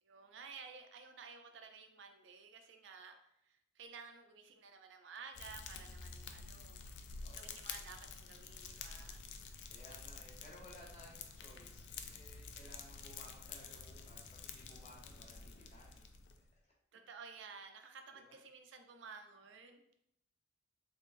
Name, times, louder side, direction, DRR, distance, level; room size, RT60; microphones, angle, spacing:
voice 1, 0.0-6.8 7.3-9.2 16.9-20.0, right 5 dB, 85° right, 5 dB, 0.5 m, -54 dB
Fire, 5.3-16.5, left 5 dB, 65° left, 0.4 m, -50 dB
voice 2, 7.2-7.6 9.7-16.0 18.1-18.3, left 1 dB, 40° left, -5 dB, 1.1 m, -59 dB
3.6 x 3.4 x 2.5 m, 0.78 s
head